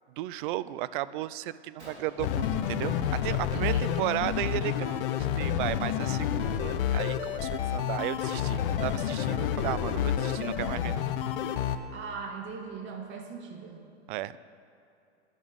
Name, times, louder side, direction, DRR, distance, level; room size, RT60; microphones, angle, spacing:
voice 1, 0.2-11.0 14.1-14.4, right 15 dB, 50° right, 17 dB, 0.5 m, -34 dB
Gunshot gunfire, 1.8-3.4 3.7-4.1 4.3-4.6 5.4-5.5 6.1-6.2 6.6-8.2, right 1 dB, 90° right, 3.3 m, -54 dB
sound 1, 2.2-11.8, left 9 dB, 55° left, 0.8 m, -29 dB
voice 2, 3.5-4.1 11.9-13.8, right 5 dB, 35° right, 2 dB, 1.6 m, -40 dB
10.5 x 6.4 x 8.8 m, 2.6 s
hypercardioid pair, 115°, 33 cm